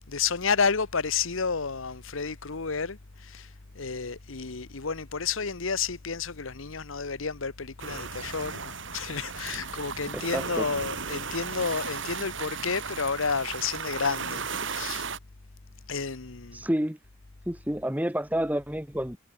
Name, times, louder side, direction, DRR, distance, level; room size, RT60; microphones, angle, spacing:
voice 1, 0.1-3.5 3.7-15.1 15.9-16.6, left 5 dB, 75° left, 1.2 m, -31 dB
sound 1, 7.8-15.2, right 5 dB, 65° right, 3.1 m, -35 dB
voice 2, 10.1-10.7 16.5-17.0 17.4-19.2, equal, 10° right, 1.2 m, -29 dB
head